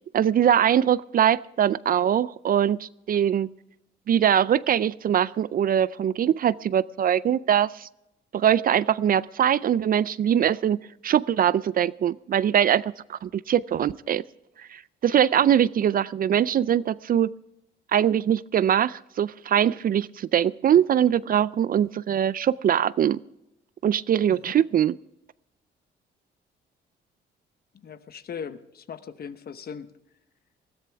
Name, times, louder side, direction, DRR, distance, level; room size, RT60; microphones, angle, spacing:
voice 1, 0.1-3.5 4.1-7.9 8.3-10.8 11.0-14.2 14.7-17.3 17.9-23.2 23.8-24.9, right 9 dB, 45° right, 19 dB, 0.4 m, -22 dB
voice 2, 27.7-29.9, left 7 dB, 50° left, 12 dB, 1.0 m, -39 dB
20.5 x 14.0 x 3.5 m, 0.87 s
cardioid pair, 90°, 20 cm